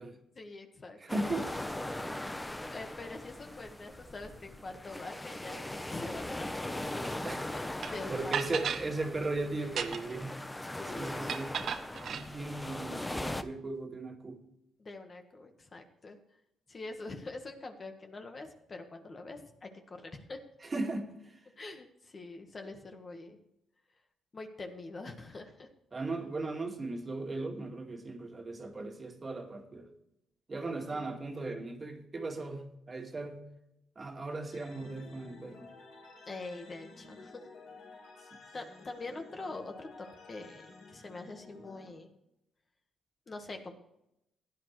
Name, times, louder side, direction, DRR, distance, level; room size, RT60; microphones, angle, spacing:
voice 1, 0.3-1.4 2.7-8.7 9.2-9.3 10.6-11.6 14.8-16.2 16.7-20.4 21.6-23.4 24.3-25.7 30.9-31.3 36.3-37.4 38.5-42.1 43.3-43.7, left 3 dB, 35° left, 1.5 m, -45 dB
voice 2, 1.0-1.5 7.0-7.4 8.1-10.4 10.9-11.6 12.1-14.4 20.7-21.1 25.9-29.9 30.5-33.4 34.0-35.7, right 2 dB, 30° right, 2.0 m, -37 dB
sound 1, 1.1-13.4, left 1 dB, 10° left, 0.8 m, -40 dB
sound 2, 7.8-7.9 8.3-8.9 9.6-10.2 11.3-12.3, right 7 dB, 60° right, 0.9 m, -34 dB
sound 3, 34.5-41.9, left 3 dB, 75° left, 3.5 m, -52 dB
16.0 x 10.5 x 3.2 m
cardioid pair, 90°, 0 cm